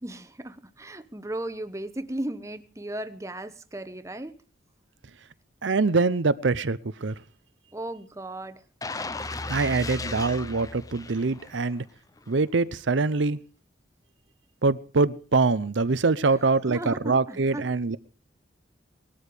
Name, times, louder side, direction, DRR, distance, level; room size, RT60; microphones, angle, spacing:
voice 1, 0.0-4.4 7.7-8.6 16.7-17.6, right 1 dB, 15° right, 10 dB, 1.0 m, -36 dB
voice 2, 5.6-7.1 9.5-11.8 12.3-13.4 14.6-18.0, right 3 dB, 80° right, 15 dB, 0.7 m, -24 dB
sound 1, 8.8-11.8 12.2-12.3, left 3 dB, 20° left, 0.7 m, -35 dB
19.5 x 12.5 x 5.0 m, 0.38 s
head